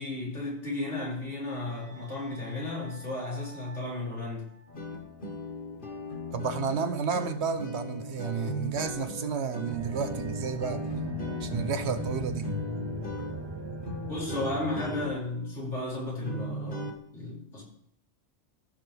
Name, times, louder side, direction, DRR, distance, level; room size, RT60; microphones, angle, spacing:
voice 1, 0.0-4.5 14.1-17.7, left 2 dB, 85° left, 4.5 m, -34 dB
sound 1, 0.8-5.1, right 3 dB, 10° left, 4.3 m, -53 dB
sound 2, 4.7-16.9, left 2 dB, 45° left, 1.7 m, -38 dB
voice 2, 6.3-10.8 11.4-12.5, right 6 dB, 70° right, 1.2 m, -31 dB
sound 3, 9.7-15.2, right 3 dB, 30° right, 0.6 m, -38 dB
15.5 x 6.9 x 3.4 m
omnidirectional pair, 1.2 m